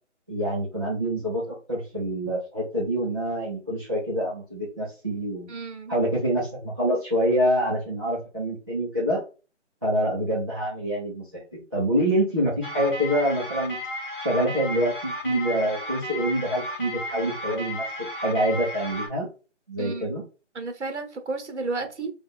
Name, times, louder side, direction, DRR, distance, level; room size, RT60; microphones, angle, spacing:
voice 1, 0.3-5.5 5.9-9.2 9.8-13.8 14.2-17.8 18.1-19.3 19.7-20.2, equal, 20° right, -8 dB, 0.8 m, -26 dB
voice 2, 5.5-5.9 19.8-20.1 20.5-22.1, right 3 dB, 65° right, 6 dB, 1.0 m, -32 dB
sound 1, 12.6-19.1, left 1 dB, 45° left, 1.2 m, -34 dB
3.4 x 2.5 x 4.1 m, 0.33 s
figure-of-eight pair, 175°, 36 cm